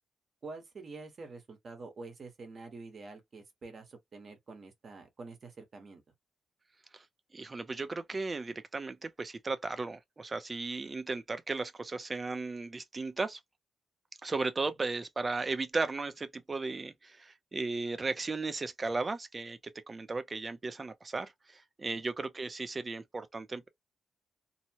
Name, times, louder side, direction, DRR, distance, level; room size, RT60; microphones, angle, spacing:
voice 1, 0.4-6.0 21.9-22.0, right 3 dB, 35° right, 1.0 m, -47 dB
voice 2, 7.3-13.4 14.2-19.6 19.9-23.7, right 3 dB, 20° right, 0.4 m, -35 dB
2.8 x 2.1 x 2.8 m
wide cardioid pair, 175°, 0 cm